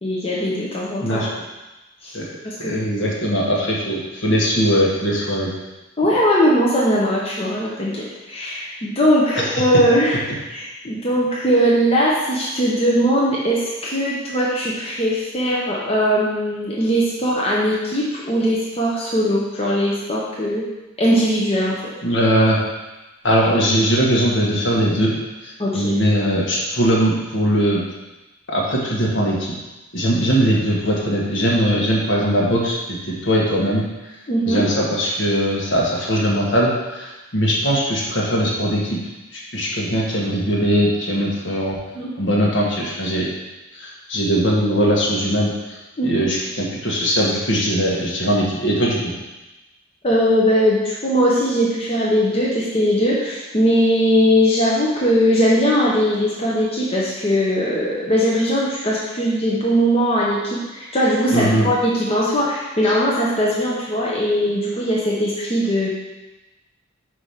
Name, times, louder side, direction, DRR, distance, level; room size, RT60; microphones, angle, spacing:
voice 1, 0.0-1.3 2.0-2.2 2.4-2.8 6.0-10.2 10.5-20.7 21.0-21.9 25.6-26.0 34.3-34.6 41.9-42.1 46.0-46.3 50.0-65.9, equal, 30° left, -6 dB, 1.0 m, -20 dB
voice 2, 2.6-5.5 9.3-9.6 22.0-22.6 23.2-25.1 25.4-27.8 28.5-29.5 29.9-32.8 33.0-33.8 34.5-39.0 39.3-41.8 42.2-43.3 43.7-45.8 46.0-49.1 61.3-61.7 62.8-62.9, equal, 60° left, -3 dB, 1.5 m, -20 dB
5.0 x 4.9 x 5.7 m, 1.1 s
head